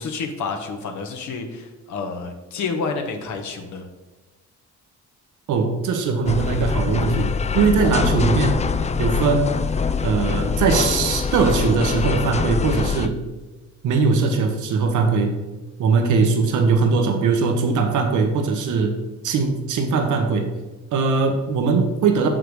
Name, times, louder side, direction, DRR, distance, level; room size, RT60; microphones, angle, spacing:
voice 1, 0.0-3.9, left 4 dB, 75° left, 4 dB, 1.1 m, -29 dB
voice 2, 5.5-8.6 9.0-9.5 10.0-13.2 13.8-15.3 15.8-19.0 19.2-20.5 20.9-22.3, right 4 dB, 80° right, 4 dB, 1.2 m, -20 dB
sound 1, 6.3-13.1, left 5 dB, 25° left, 0.4 m, -23 dB
6.7 x 5.8 x 4.8 m, 1.2 s
cardioid pair, 90°, 30 cm